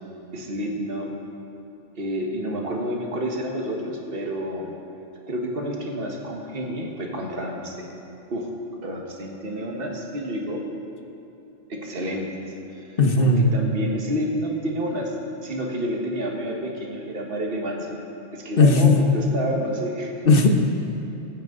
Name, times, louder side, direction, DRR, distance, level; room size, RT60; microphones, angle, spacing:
voice 1, 0.3-1.1 2.0-4.7 5.3-7.9 8.3-8.5 8.8-10.7 11.7-12.3 13.2-15.1 15.4-18.0 18.3-20.1, equal, 50° right, 0 dB, 1.7 m, -29 dB
voice 2, 13.0-13.5 18.6-19.1 20.3-20.5, left 3 dB, 45° left, 3 dB, 1.3 m, -16 dB
23.0 x 8.6 x 3.9 m, 2.8 s
omnidirectional pair, 1.3 m